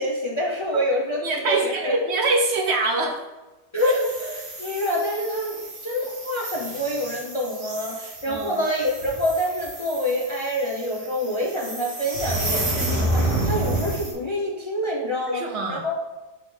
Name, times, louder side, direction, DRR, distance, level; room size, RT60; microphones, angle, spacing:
voice 1, 0.0-2.0 3.7-5.6 5.8-16.0, equal, 40° left, -2 dB, 0.4 m, -26 dB
voice 2, 1.2-3.2 3.8-3.9 8.3-8.6 15.3-15.8, right 2 dB, 50° right, 3 dB, 0.9 m, -24 dB
sound 1, 3.8-14.1, right 1 dB, 70° right, 2.4 m, -30 dB
5.1 x 5.0 x 3.8 m, 1.1 s
omnidirectional pair, 1.7 m